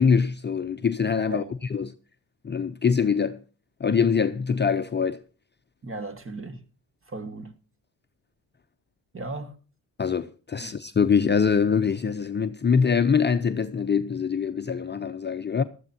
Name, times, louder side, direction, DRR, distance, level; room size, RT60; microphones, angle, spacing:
voice 1, 0.0-1.9 2.4-3.4 3.8-5.2 10.0-15.6, left 6 dB, 25° left, 0.7 m, -24 dB
voice 2, 5.8-6.6 7.1-7.5 9.1-9.6 10.6-10.8, right 2 dB, 30° right, 1.8 m, -36 dB
18.5 x 13.5 x 2.8 m
cardioid pair, 90°, 43 cm